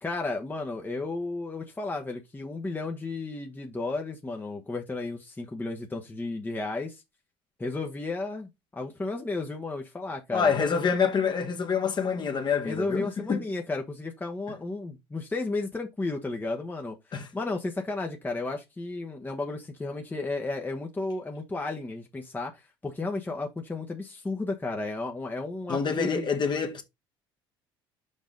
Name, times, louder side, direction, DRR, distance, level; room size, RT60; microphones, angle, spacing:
voice 1, 0.0-7.0 7.6-10.5 12.6-26.3, left 3 dB, 15° left, 1.2 m, -33 dB
voice 2, 10.3-13.4 17.1-17.3 25.7-26.8, left 6 dB, 35° left, 1.5 m, -26 dB
5.5 x 5.1 x 3.8 m
hypercardioid pair, 65°, 13 cm